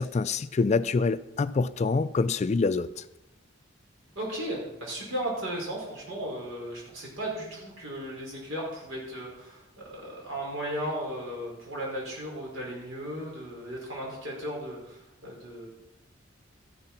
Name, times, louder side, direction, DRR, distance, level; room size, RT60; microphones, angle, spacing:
voice 1, 0.0-2.9, left 4 dB, 35° left, 14 dB, 0.3 m, -26 dB
voice 2, 4.2-9.6 9.9-15.7, right 1 dB, 75° right, -3 dB, 5.5 m, -35 dB
14.0 x 11.0 x 4.4 m, 0.92 s
head